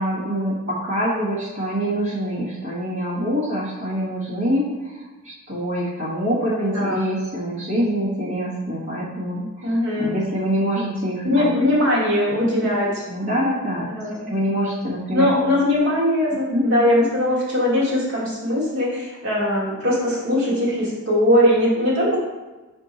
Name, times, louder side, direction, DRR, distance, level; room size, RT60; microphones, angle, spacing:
voice 1, 0.0-11.6 13.1-13.9 14.3-15.3 16.5-16.7, equal, 60° right, -10 dB, 1.5 m, -25 dB
voice 2, 6.4-7.0 9.6-10.1 11.2-12.9 13.9-14.3 15.1-22.2, left 1 dB, 80° right, -6 dB, 2.0 m, -20 dB
5.3 x 4.4 x 4.1 m, 1.2 s
head